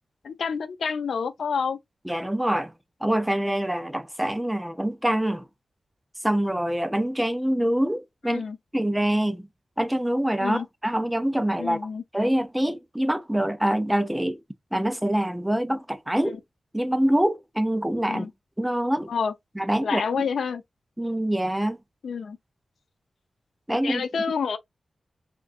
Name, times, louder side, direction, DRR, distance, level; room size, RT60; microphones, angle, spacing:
voice 1, 0.2-1.8 8.3-8.6 10.4-10.7 11.6-12.0 16.3-16.4 18.1-18.3 19.1-19.3 19.8-20.6 22.0-22.4 23.8-24.6, left 6 dB, 90° left, 0.5 m, -28 dB
voice 2, 2.1-2.7 3.0-5.5 6.2-8.4 8.7-9.5 9.8-11.8 12.1-14.4 14.7-16.4 16.7-18.3 18.6-19.1 19.6-20.2 21.0-21.8 23.7-24.0, right 1 dB, 5° right, 0.3 m, -25 dB
3.5 x 2.6 x 2.3 m
wide cardioid pair, 150°, 0 cm